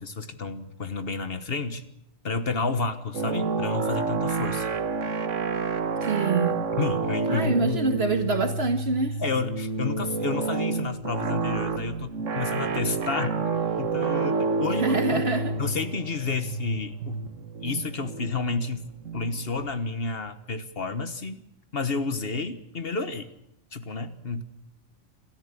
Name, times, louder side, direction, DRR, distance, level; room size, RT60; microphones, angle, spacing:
voice 1, 0.0-1.8 2.2-4.7 6.8-7.8 9.2-15.2 15.6-17.2 17.6-18.9 19.1-21.4 21.7-23.3 23.7-24.4, left 4 dB, 50° left, 10 dB, 1.5 m, -30 dB
sound 1, 3.1-19.7, right 4 dB, 70° right, 1.5 m, -29 dB
voice 2, 6.0-6.6 7.3-9.2 14.8-15.5, right 3 dB, 50° right, 6 dB, 1.9 m, -26 dB
28.0 x 13.5 x 8.5 m, 0.84 s
omnidirectional pair, 1.3 m